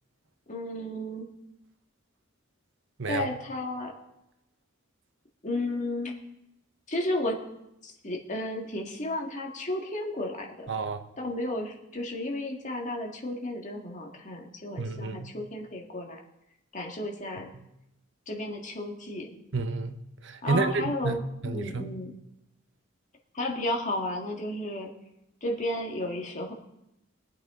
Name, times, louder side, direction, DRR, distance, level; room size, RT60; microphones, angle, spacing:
voice 1, 0.5-1.3 3.1-3.9 5.4-6.1 6.9-7.4 7.8-10.7 11.2-16.2 16.7-17.5 18.3-19.3 20.4-22.2 23.3-24.9 25.4-26.5, left 1 dB, 35° left, 1.8 m, -33 dB
voice 2, 3.0-3.4 10.7-11.0 14.8-15.3 17.5-17.7 19.5-21.2 21.4-22.0, right 3 dB, 60° right, 0.9 m, -30 dB
21.5 x 8.3 x 3.7 m
head